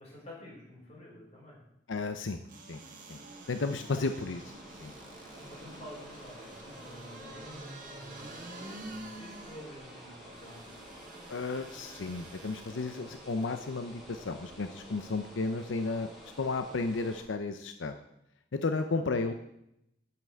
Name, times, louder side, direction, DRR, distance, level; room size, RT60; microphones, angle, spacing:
voice 1, 0.0-1.6 5.2-11.0 18.8-19.2, left 1 dB, 35° left, -4 dB, 4.8 m, -50 dB
voice 2, 1.9-2.4 2.7-2.8 3.1-3.2 3.5-4.5 4.8-4.9 11.3-16.1 16.4-17.9 18.5-19.3, left 3 dB, 85° left, 7 dB, 0.6 m, -33 dB
sound 1, 2.4-13.0 13.4-13.5, right 2 dB, 45° right, 1.6 m, -49 dB
sound 2, 2.8-17.2, equal, ahead, 3.8 m, -50 dB
9.1 x 6.0 x 7.8 m, 0.80 s
head